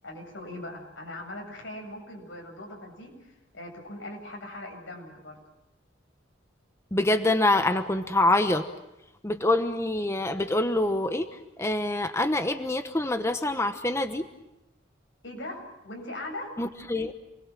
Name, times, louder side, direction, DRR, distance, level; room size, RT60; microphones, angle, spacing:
voice 1, 0.0-5.4 15.2-16.5, left 1 dB, 90° left, 2 dB, 7.9 m, -40 dB
voice 2, 6.9-8.7 9.2-11.3 11.6-14.3 16.6-17.1, left 2 dB, 15° left, 8 dB, 1.0 m, -25 dB
28.0 x 21.0 x 7.6 m, 0.92 s
head